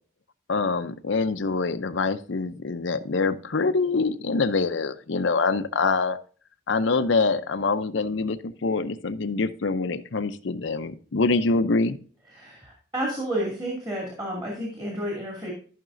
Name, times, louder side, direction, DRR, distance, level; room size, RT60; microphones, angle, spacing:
voice 1, 0.5-6.2 6.7-12.0, left 3 dB, 70° left, 11 dB, 0.6 m, -25 dB
voice 2, 12.3-15.5, right 1 dB, 25° right, -3 dB, 2.4 m, -31 dB
14.0 x 5.9 x 2.6 m, 0.42 s
head